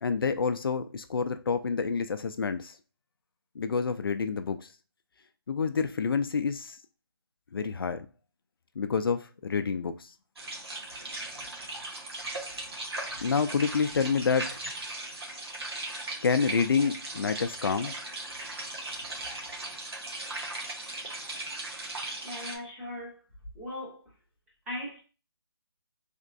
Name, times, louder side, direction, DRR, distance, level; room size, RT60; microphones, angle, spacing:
voice 1, 0.0-2.8 3.6-4.7 5.5-6.8 7.5-8.1 8.8-10.1 13.2-14.6 16.2-17.9, left 5 dB, 65° left, 0.4 m, -28 dB
sound 1, 10.4-22.6, right 2 dB, 80° right, 1.5 m, -38 dB
voice 2, 22.2-23.2 23.5-24.0 24.7-25.0, left 1 dB, 5° right, 0.7 m, -38 dB
3.4 x 3.0 x 2.5 m
hypercardioid pair, 170°, 13 cm